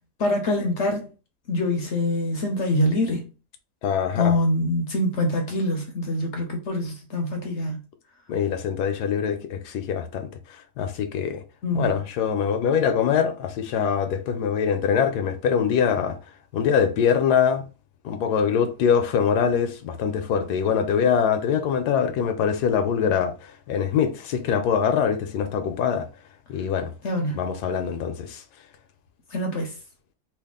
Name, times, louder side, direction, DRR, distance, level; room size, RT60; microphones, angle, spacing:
voice 1, 0.2-1.1 1.5-3.2 4.1-7.8 11.6-11.9 27.0-27.4 29.3-29.7, left 1 dB, 60° left, 0.8 m, -24 dB
voice 2, 3.8-4.3 8.3-10.3 10.8-11.4 11.7-16.2 16.5-17.6 18.0-26.1 26.5-26.9 27.3-28.4, left 7 dB, 80° left, 1.1 m, -23 dB
3.2 x 2.4 x 3.5 m
omnidirectional pair, 1.7 m